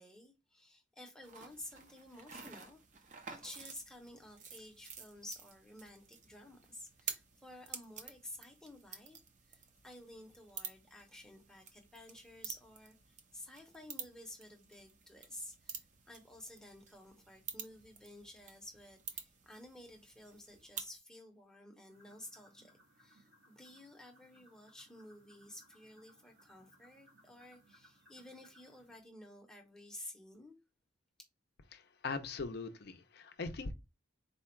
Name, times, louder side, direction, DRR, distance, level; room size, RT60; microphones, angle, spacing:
voice 1, 0.0-9.2 9.4-30.6, left 1 dB, 5° left, 0.7 m, -53 dB
sound 1, 1.2-21.0, right 6 dB, 40° right, 0.6 m, -50 dB
sound 2, 21.9-29.0, right 1 dB, 85° right, 2.1 m, -66 dB
voice 2, 31.7-33.7, left 4 dB, 50° left, 0.5 m, -41 dB
4.2 x 2.3 x 4.3 m
head